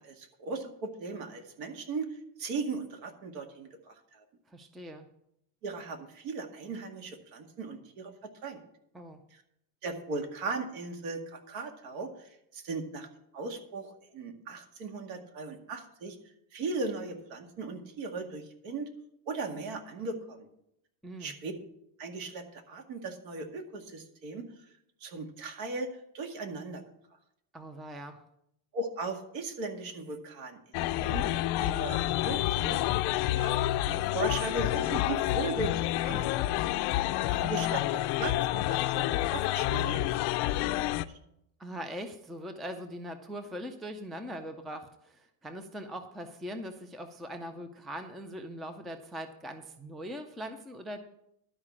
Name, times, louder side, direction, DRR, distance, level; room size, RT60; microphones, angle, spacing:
voice 1, 0.0-4.2 5.6-8.6 9.3-9.4 9.8-13.1 13.3-16.2 16.5-18.9 19.3-20.5 21.2-21.5 22.0-24.5 25.0-25.9 26.1-26.8 28.7-32.8 33.3-36.7 37.3-40.2 40.4-41.2, right 3 dB, 65° right, 5 dB, 2.1 m, -38 dB
voice 2, 4.5-5.1 8.9-9.2 21.0-21.3 27.5-28.2 41.6-51.1, equal, ahead, 7 dB, 0.4 m, -41 dB
sound 1, 30.7-41.1, left 15 dB, 55° left, 0.6 m, -29 dB
12.0 x 4.9 x 8.5 m, 0.78 s
cardioid pair, 140°, 48 cm